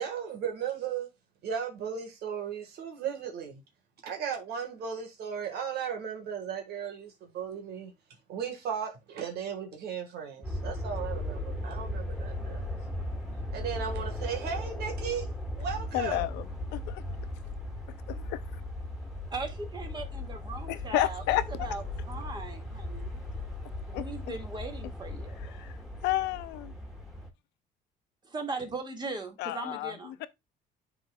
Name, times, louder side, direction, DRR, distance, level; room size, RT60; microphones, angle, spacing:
voice 1, 0.0-1.1 1.4-3.6 4.0-7.9 8.3-12.7 13.5-15.3 15.6-16.3, right 7 dB, 70° right, 1.7 m, -36 dB
sound 1, 10.4-27.3, left 1 dB, ahead, 2.0 m, -37 dB
voice 2, 15.9-16.4 16.7-17.0 18.1-18.6 20.7-21.4 23.9-24.0 25.5-25.8 26.0-26.7 29.4-29.9 30.2-30.3, left 16 dB, 90° left, 0.6 m, -31 dB
voice 3, 19.3-23.2 23.9-25.6 28.2-30.3, right 3 dB, 25° right, 1.9 m, -39 dB
11.5 x 3.9 x 2.3 m
cardioid pair, 110°, 17 cm